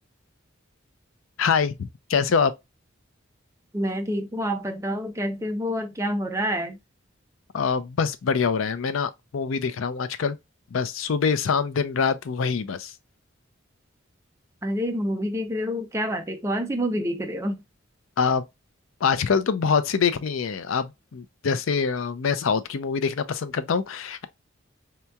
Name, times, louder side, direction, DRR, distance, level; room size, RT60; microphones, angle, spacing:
voice 1, 1.4-2.5 7.5-10.4 10.7-12.9 18.2-18.4 19.0-24.3, left 5 dB, 85° left, 0.5 m, -24 dB
voice 2, 3.7-6.8 14.6-17.6, equal, 15° right, 0.5 m, -27 dB
4.4 x 2.8 x 2.2 m
head